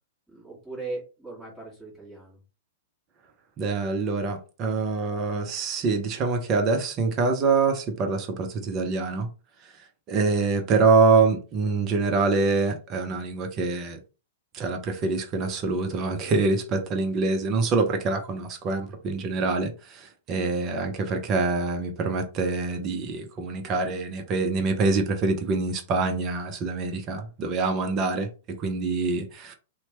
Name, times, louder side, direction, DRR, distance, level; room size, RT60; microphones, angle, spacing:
voice 1, 0.3-2.4, right 3 dB, 5° right, 1.5 m, -39 dB
voice 2, 3.6-9.3 10.1-14.0 14.5-29.5, right 4 dB, 35° right, 0.6 m, -25 dB
2.8 x 2.1 x 2.9 m
figure-of-eight pair, 100°, 0 cm